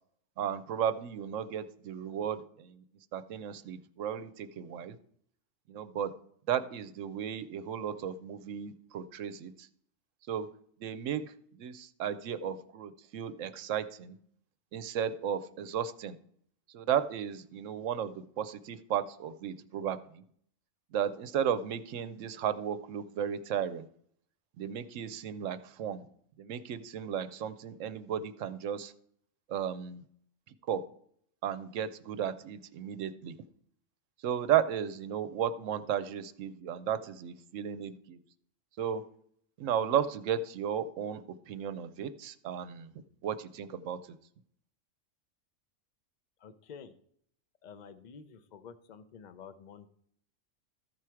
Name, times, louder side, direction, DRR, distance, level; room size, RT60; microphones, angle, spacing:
voice 1, 0.4-2.8 3.1-5.0 5.7-6.1 6.5-9.7 10.3-10.5 10.8-14.2 14.7-16.2 16.7-20.2 20.9-23.9 24.6-26.1 26.4-28.9 29.5-30.0 30.7-30.8 31.4-33.4 34.2-38.2 38.8-39.0 39.6-42.9 43.2-44.0, right 9 dB, 70° right, 13 dB, 0.9 m, -34 dB
voice 2, 46.4-46.9 47.6-49.9, left 6 dB, 45° left, 12 dB, 0.6 m, -50 dB
14.0 x 4.8 x 4.5 m, 0.65 s
omnidirectional pair, 1.4 m